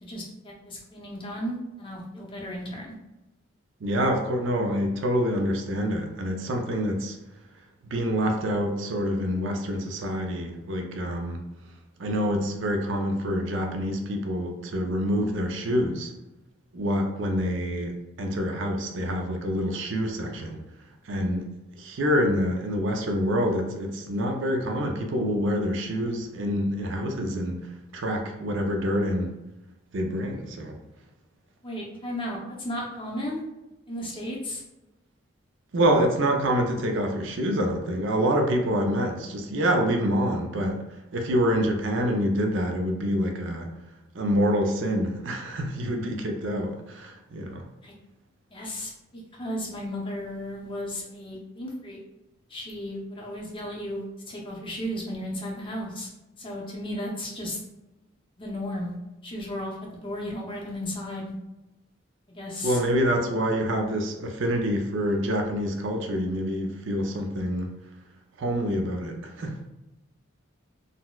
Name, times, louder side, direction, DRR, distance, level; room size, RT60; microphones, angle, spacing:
voice 1, 0.0-2.9 31.6-33.4 33.9-34.6 47.8-47.9 48.5-52.0 52.5-56.1 56.4-57.6 58.4-59.0 59.2-61.3 62.3-62.8, equal, 25° left, -3 dB, 0.6 m, -34 dB
voice 2, 3.8-7.2 7.9-11.4 12.0-16.1 16.7-20.6 21.0-29.4 29.9-30.8 35.7-40.8 41.1-43.7 44.1-47.7 62.6-67.7 68.4-69.6, equal, 70° right, 3 dB, 0.5 m, -26 dB
3.9 x 2.1 x 2.3 m, 0.98 s
head